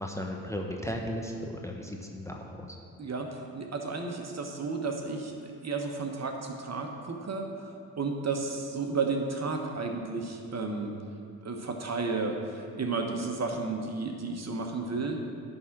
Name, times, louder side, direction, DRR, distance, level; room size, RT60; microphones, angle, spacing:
voice 1, 0.0-2.8, equal, 5° left, 1 dB, 1.1 m, -36 dB
voice 2, 3.0-10.9 11.4-15.2, right 4 dB, 40° right, 3 dB, 1.3 m, -33 dB
11.0 x 3.8 x 7.3 m, 2.3 s
hypercardioid pair, 50°, 42 cm